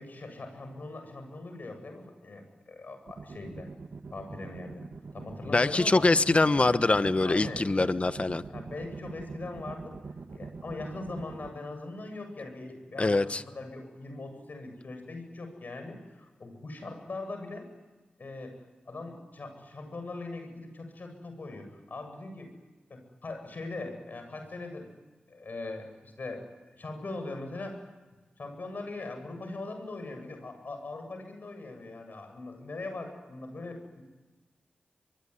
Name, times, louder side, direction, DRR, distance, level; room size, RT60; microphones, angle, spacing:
voice 1, 0.0-3.7 4.1-4.8 5.1-6.1 7.2-7.7 8.5-10.0 10.3-17.7 18.2-18.5 18.9-22.5 22.9-24.9 25.3-27.9 28.4-34.0, left 2 dB, 60° left, 5 dB, 8.0 m, -41 dB
sound 1, 3.1-11.5, right 4 dB, 65° right, 1.7 m, -42 dB
voice 2, 5.5-8.4 13.0-13.4, left 3 dB, 35° left, 12 dB, 1.2 m, -24 dB
24.5 x 22.0 x 10.0 m, 1.2 s
cardioid pair, 65°, 3 cm